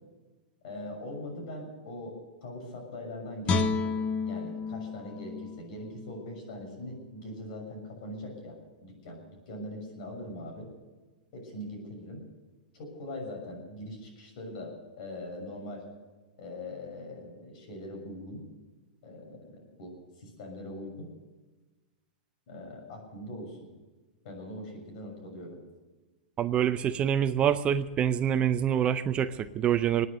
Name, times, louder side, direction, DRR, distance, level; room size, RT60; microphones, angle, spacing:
voice 1, 0.6-4.0 4.2-10.7 11.3-12.2 12.7-15.8 16.4-18.4 19.0-21.1 22.5-23.6 24.2-25.6, left 1 dB, 55° left, 2 dB, 6.7 m, -41 dB
Guitar, 3.4-6.6 7.0-7.2, left 4 dB, 30° left, 1.1 m, -32 dB
voice 2, 26.4-30.1, right 9 dB, 25° right, 12 dB, 0.5 m, -26 dB
22.5 x 9.5 x 6.7 m, 1.2 s
hypercardioid pair, 140°, 5 cm